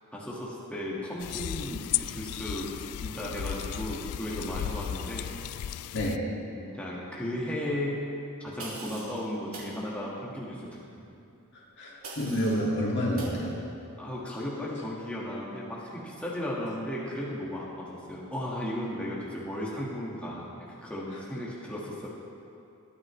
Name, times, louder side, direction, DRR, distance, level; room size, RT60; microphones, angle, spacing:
voice 1, 0.1-5.3 6.5-8.1 8.4-10.8 14.0-22.1, left 1 dB, 5° left, -6 dB, 1.7 m, -35 dB
sound 1, 1.2-6.2, left 11 dB, 80° left, 0.3 m, -35 dB
voice 2, 5.9-6.3 11.5-13.6, equal, 55° left, -3 dB, 2.2 m, -29 dB
sound 2, 8.6-9.2 9.5-9.7 12.0-12.7 13.2-13.4, right 2 dB, 70° right, 3.3 m, -42 dB
22.5 x 8.8 x 3.2 m, 2.6 s
head